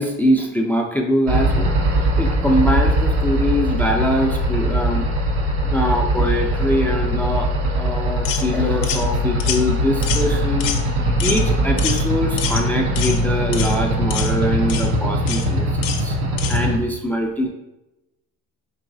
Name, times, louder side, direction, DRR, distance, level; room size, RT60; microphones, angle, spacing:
voice 1, 0.0-5.1 5.7-16.2 16.5-17.5, equal, 5° left, 1 dB, 0.3 m, -23 dB
sound 1, 1.3-16.8, right 1 dB, 90° right, 0.8 m, -21 dB
sound 2, 8.3-8.5 8.8-9.0 9.4-9.6 10.0-10.3 10.6-10.8 11.2-11.4 11.8-12.0 12.4-12.6 13.0-13.2 13.5-13.8 14.1-14.3 14.7-14.9 15.3-15.5 15.8-16.0 16.4-16.6, left 8 dB, 65° left, 0.6 m, -26 dB
4.8 x 2.9 x 2.6 m, 0.97 s
cardioid pair, 110°, 36 cm